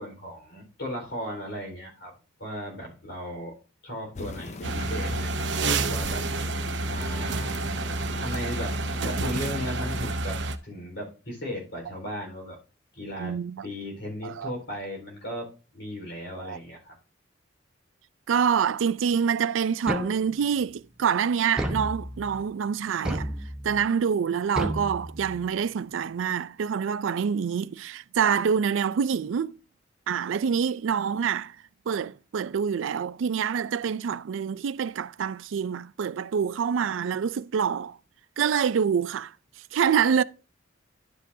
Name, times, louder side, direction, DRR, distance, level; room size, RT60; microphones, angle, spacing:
voice 1, 0.0-2.1 2.4-3.5 3.8-5.5 5.8-6.3 6.8-7.5 8.2-10.4 10.6-12.6 12.9-13.4 13.6-17.0, equal, 65° left, 4.3 m, -36 dB
sound 1, 4.1-10.1, left 3 dB, 35° left, 0.4 m, -41 dB
sound 2, 4.6-10.6, right 2 dB, 65° right, 0.7 m, -29 dB
voice 2, 13.2-13.7 14.2-14.5 16.4-16.6 18.3-23.3 23.6-29.6 30.1-31.6 31.9-38.0 38.4-39.3 39.7-40.2, right 7 dB, 85° right, 0.4 m, -26 dB
sound 3, 19.9-20.6 21.6-22.4 23.0-23.8 24.6-25.6, equal, 5° right, 1.1 m, -32 dB
11.5 x 7.5 x 2.7 m
head